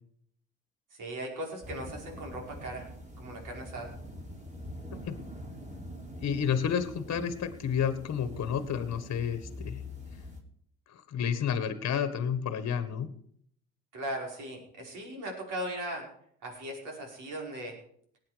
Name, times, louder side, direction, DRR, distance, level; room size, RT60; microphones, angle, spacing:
voice 1, 0.9-2.9 3.2-4.0 13.9-16.1 16.4-17.8, right 1 dB, 60° right, 0 dB, 5.4 m, -38 dB
sound 1, 1.6-10.4, left 1 dB, 20° right, 4.0 m, -44 dB
voice 2, 6.2-9.8 10.9-13.1, left 7 dB, 45° left, 11 dB, 1.6 m, -30 dB
19.0 x 8.7 x 5.2 m, 0.65 s
hypercardioid pair, 65°, 35 cm